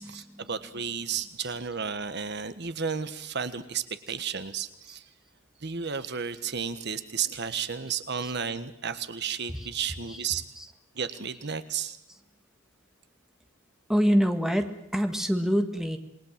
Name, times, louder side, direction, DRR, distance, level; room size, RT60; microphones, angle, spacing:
voice 1, 0.0-5.1 5.6-10.4 10.9-12.0, right 6 dB, 55° right, 11 dB, 1.4 m, -33 dB
voice 2, 13.9-16.0, equal, ahead, 6 dB, 1.8 m, -26 dB
27.5 x 21.0 x 7.5 m, 0.81 s
head